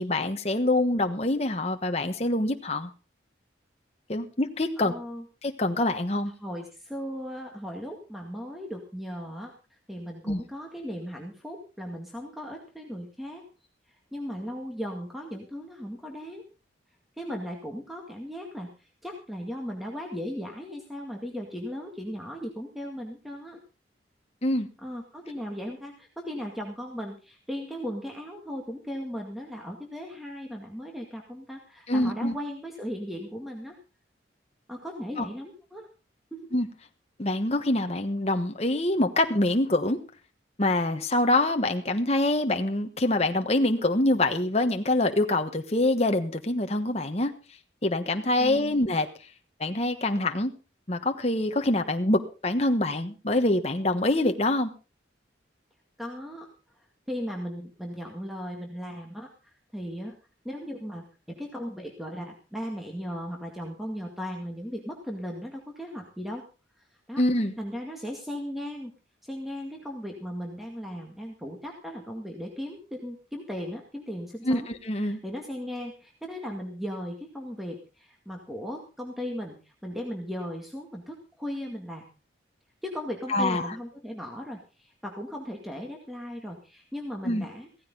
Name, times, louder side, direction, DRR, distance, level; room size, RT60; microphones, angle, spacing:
voice 1, 0.0-2.9 4.1-4.9 5.4-6.3 10.3-10.4 24.4-24.7 31.9-32.4 35.2-35.3 36.5-36.7 37.2-40.0 40.6-47.3 47.8-49.1 49.6-50.5 50.9-54.7 67.2-67.5 74.4-75.2 83.3-83.7 87.2-87.4, left 1 dB, 35° left, 6 dB, 1.2 m, -25 dB
voice 2, 4.8-5.3 6.4-13.4 13.9-16.4 17.2-23.6 24.8-33.8 34.7-35.9 36.3-36.5 48.4-48.8 56.0-56.5 57.1-60.2 60.4-66.4 66.8-67.2 67.6-68.9 69.2-74.7 75.0-82.1 82.8-87.7, equal, ahead, 1 dB, 2.0 m, -37 dB
16.5 x 14.5 x 3.9 m, 0.34 s
head